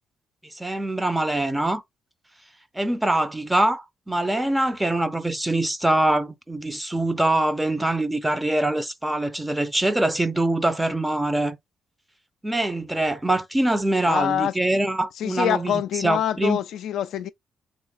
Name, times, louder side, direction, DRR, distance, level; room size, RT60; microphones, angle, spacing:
voice 1, 0.5-1.8 2.7-11.6 12.4-15.7 16.0-16.6, right 1 dB, 10° right, 0.6 m, -23 dB
voice 2, 14.0-14.5 15.2-17.3, left 10 dB, 75° left, 0.3 m, -25 dB
3.6 x 2.1 x 3.9 m
supercardioid pair, 70°, 0 cm